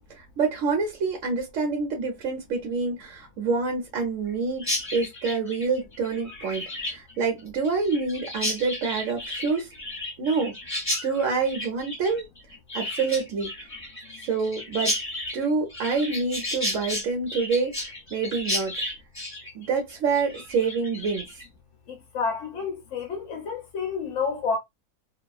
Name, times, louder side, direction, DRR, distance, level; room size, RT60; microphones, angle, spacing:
voice 1, 0.0-9.7 10.2-10.5 11.0-12.3 12.7-13.5 14.2-15.0 15.3-18.7 19.5-21.3, right 4 dB, 60° right, 0.9 m, -27 dB
Chirp tweet, 4.6-21.5, left 1 dB, 10° left, 1.2 m, -33 dB
voice 2, 21.9-24.6, left 5 dB, 55° left, 0.9 m, -29 dB
2.9 x 2.3 x 2.2 m
omnidirectional pair, 1.8 m